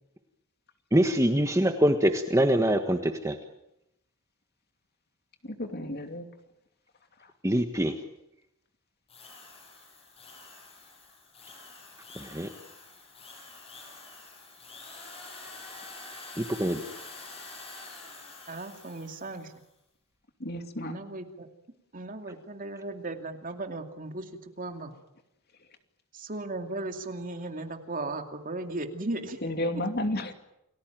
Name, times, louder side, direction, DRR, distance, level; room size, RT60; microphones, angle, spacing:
voice 1, 0.9-3.3 7.4-7.9 12.2-12.5 16.4-16.8, right 1 dB, 15° right, 6 dB, 1.4 m, -24 dB
voice 2, 5.4-6.3 20.4-21.0 29.4-30.3, left 1 dB, 45° left, 7 dB, 2.7 m, -32 dB
Drill, 9.1-19.5, left 3 dB, 25° left, 7.4 m, -47 dB
voice 3, 18.5-19.5 20.8-21.5 21.9-24.9 26.1-29.4, right 2 dB, 40° right, 6 dB, 2.5 m, -36 dB
29.5 x 20.0 x 9.2 m, 0.83 s
head